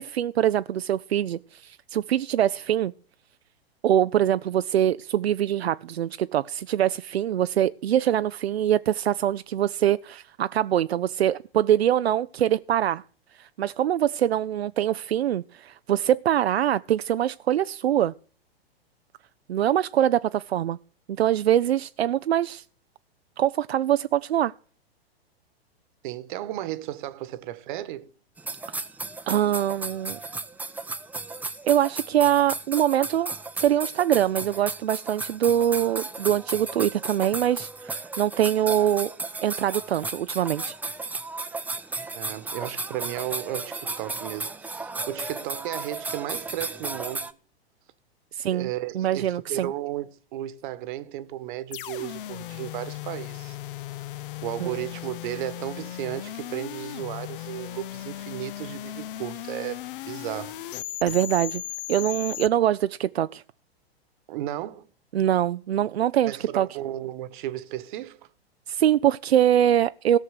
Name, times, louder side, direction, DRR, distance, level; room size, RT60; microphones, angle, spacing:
voice 1, 0.0-2.9 3.8-13.0 13.4-18.1 19.5-20.8 21.1-22.6 23.4-24.5 28.7-28.8 29.3-30.2 31.7-33.3 33.6-39.1 39.4-40.7 48.3-48.7 48.9-49.7 54.6-54.8 61.0-61.6 61.9-63.4 65.1-66.7 68.7-70.2, right 11 dB, 80° right, 0.5 m, -23 dB
voice 2, 26.0-28.1 42.1-47.3 48.5-53.6 54.0-54.1 54.4-60.6 64.3-64.9 66.2-68.3, right 14 dB, 50° right, 1.2 m, -34 dB
sound 1, 28.4-47.3, right 3 dB, 5° right, 0.6 m, -34 dB
sound 2, 51.7-62.5, left 14 dB, 55° left, 0.7 m, -37 dB
17.0 x 6.5 x 6.4 m
hypercardioid pair, 110°, 31 cm